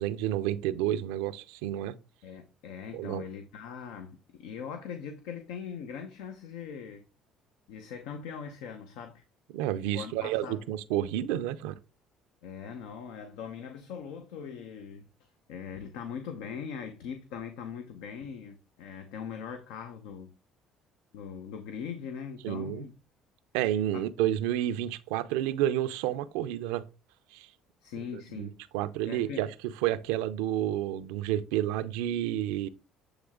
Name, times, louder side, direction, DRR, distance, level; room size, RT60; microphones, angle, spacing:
voice 1, 0.0-1.9 2.9-3.2 9.5-11.8 22.4-22.8 23.5-26.8 27.3-27.5 28.1-29.5 29.8-32.7, right 12 dB, 90° right, 0.5 m, -30 dB
voice 2, 2.2-7.0 7.7-9.2 9.9-10.6 12.4-20.3 21.1-22.9 27.8-28.6 29.1-29.5, left 7 dB, 85° left, 0.8 m, -41 dB
8.1 x 3.2 x 3.7 m
supercardioid pair, 90°, 0 cm